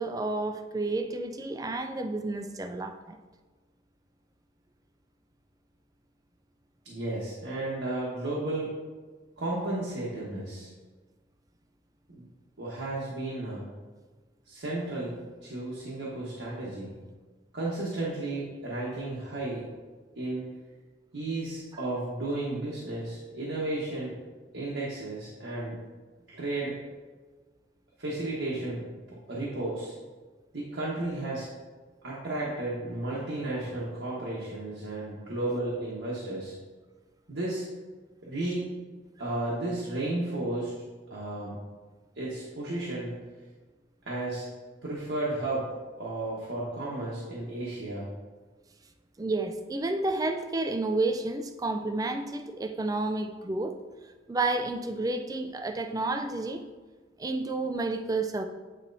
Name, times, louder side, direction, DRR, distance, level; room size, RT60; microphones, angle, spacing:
voice 1, 0.0-3.2 21.7-21.8 49.2-53.8 54.3-56.6 57.2-58.5, right 2 dB, 20° right, 7 dB, 0.3 m, -30 dB
voice 2, 6.8-8.7 9.4-10.7 12.1-12.3 12.6-13.6 14.5-16.9 17.5-19.7 20.2-20.4 21.1-24.2 24.5-25.8 26.3-26.7 28.0-29.9 30.5-31.5 32.0-36.5 37.3-37.6 38.2-38.7 39.2-40.7 41.1-41.6 42.2-43.2 44.0-44.5 44.8-45.7 46.0-48.1, right 2 dB, 80° right, -6 dB, 1.2 m, -33 dB
8.9 x 4.2 x 2.7 m, 1.3 s
head